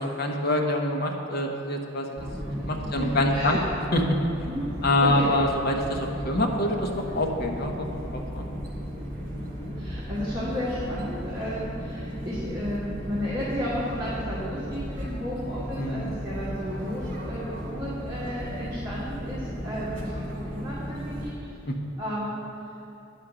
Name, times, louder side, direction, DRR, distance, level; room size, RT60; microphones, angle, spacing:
voice 1, 0.0-2.1 2.7-3.6 3.9-4.0 4.8-7.9 8.1-8.5 15.8-16.2 21.7-21.8, left 1 dB, 50° left, 2 dB, 0.9 m, -25 dB
sound 1, 2.1-21.3, equal, 45° right, 1.9 m, -35 dB
voice 2, 2.2-3.6 4.5-4.7 5.0-5.3 9.5-21.5 22.0-22.4, equal, 20° right, -11 dB, 1.5 m, -33 dB
9.3 x 4.9 x 6.9 m, 2.9 s
head